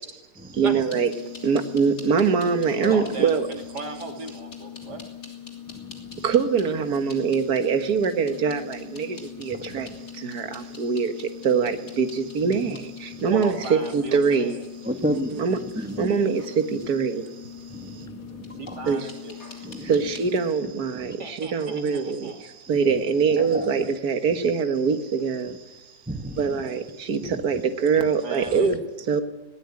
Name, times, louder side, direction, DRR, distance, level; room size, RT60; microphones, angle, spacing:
voice 1, 0.6-1.1 1.4-3.5 6.2-9.9 10.1-14.6 15.4-15.6 16.0-17.4 18.9-19.1 19.8-25.8 26.4-28.8 29.1-29.2, right 5 dB, 70° right, 1.9 m, -23 dB
sound 1, 0.8-20.5, left 8 dB, 60° left, 3.6 m, -41 dB
voice 2, 2.9-5.0 6.6-6.7 13.3-14.6 18.5-19.4 21.2-22.5 28.2-28.7, right 3 dB, 85° right, 3.5 m, -36 dB
voice 3, 5.7-6.2 9.5-10.0 10.4-10.5 12.4-12.8 13.1-13.3 14.8-16.1 17.7-18.9 19.6-20.1 20.9-21.2 22.7-23.0 23.4-23.9 24.4-24.5 25.4-25.6 26.1-26.7 27.2-27.6 27.9-28.1, equal, 5° right, 1.2 m, -34 dB
19.5 x 18.5 x 9.7 m
omnidirectional pair, 1.7 m